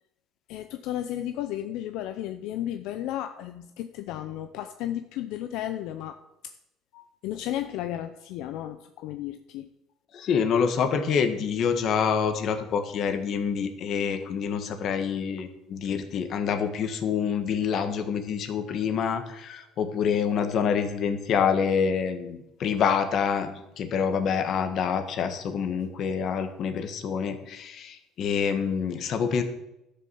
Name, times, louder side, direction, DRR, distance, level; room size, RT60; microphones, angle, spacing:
voice 1, 0.5-6.5 6.9-9.7, left 12 dB, 75° left, 8 dB, 0.7 m, -34 dB
voice 2, 10.1-29.4, left 6 dB, 50° left, 7 dB, 1.6 m, -27 dB
12.5 x 6.9 x 7.1 m, 0.87 s
cardioid pair, 130°, 0 cm